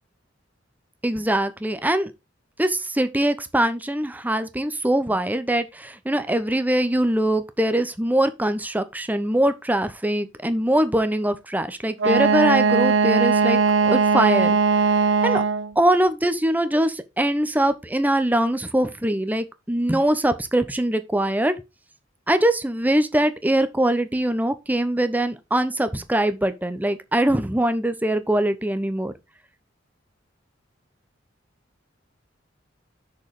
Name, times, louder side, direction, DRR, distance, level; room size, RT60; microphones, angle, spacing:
voice 1, 1.0-2.1 2.6-14.6 15.2-15.4 15.8-21.6 22.3-29.1, right 1 dB, 10° right, 0.9 m, -22 dB
Wind instrument woodwind instrument, 12.0-15.7, right 5 dB, 85° right, 0.8 m, -19 dB
6.5 x 6.5 x 4.8 m
head